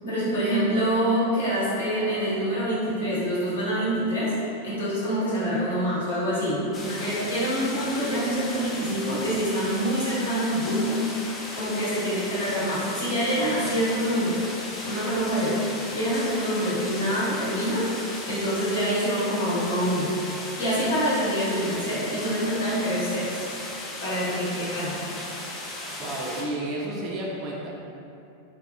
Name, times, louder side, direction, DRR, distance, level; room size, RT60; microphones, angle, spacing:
voice 1, 0.0-4.4 4.6-14.5 14.8-15.6 15.9-17.9 18.3-23.4 24.0-25.0, equal, 70° left, -10 dB, 0.9 m, -26 dB
sound 1, 6.7-26.4, left 1 dB, 20° left, 0.4 m, -36 dB
voice 2, 26.0-27.7, right 1 dB, 35° right, -3 dB, 0.4 m, -31 dB
2.6 x 2.1 x 2.6 m, 2.7 s
figure-of-eight pair, 90°, 0 cm